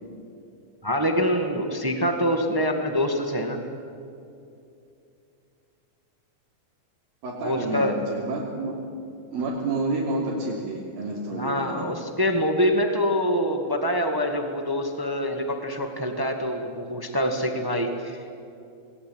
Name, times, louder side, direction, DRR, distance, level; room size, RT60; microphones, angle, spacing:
voice 1, 0.8-3.6 7.4-8.0 11.3-18.3, equal, 30° right, 4 dB, 0.4 m, -25 dB
voice 2, 7.2-8.7 9.3-11.9, right 2 dB, 80° right, -6 dB, 5.0 m, -29 dB
28.0 x 21.5 x 9.0 m, 2.6 s
omnidirectional pair, 4.1 m